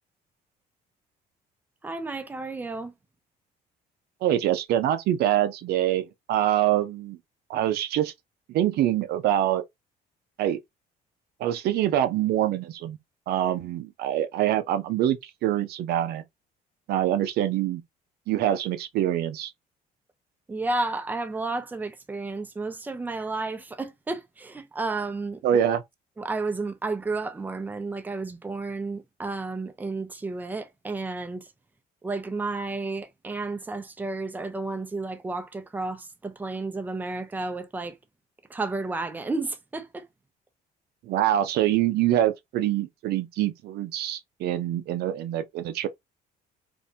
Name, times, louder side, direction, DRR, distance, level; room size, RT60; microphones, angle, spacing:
voice 1, 1.8-2.9 20.5-25.6 26.2-31.5 32.0-38.0 38.5-40.1, right 3 dB, 10° right, 0.5 m, -32 dB
voice 2, 4.2-7.2 7.5-8.1 8.5-9.6 10.4-10.6 11.4-13.0 13.3-16.2 16.9-17.8 18.3-19.5 25.4-25.8 41.0-45.9, right 12 dB, 70° right, 0.5 m, -25 dB
2.5 x 2.1 x 2.7 m
cardioid pair, 110°, 17 cm